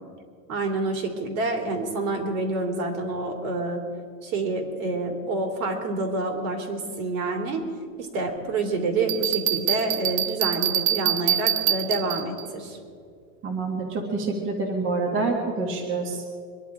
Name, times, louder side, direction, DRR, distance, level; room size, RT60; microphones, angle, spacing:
voice 1, 0.5-3.8 4.2-7.6 8.0-12.8, right 2 dB, 65° right, 2 dB, 3.4 m, -28 dB
Bell, 9.1-12.4, right 11 dB, 45° right, 0.8 m, -25 dB
voice 2, 13.4-16.2, right 3 dB, 25° right, -1 dB, 1.8 m, -27 dB
25.0 x 11.0 x 5.0 m, 2.3 s
supercardioid pair, 160°, 45 cm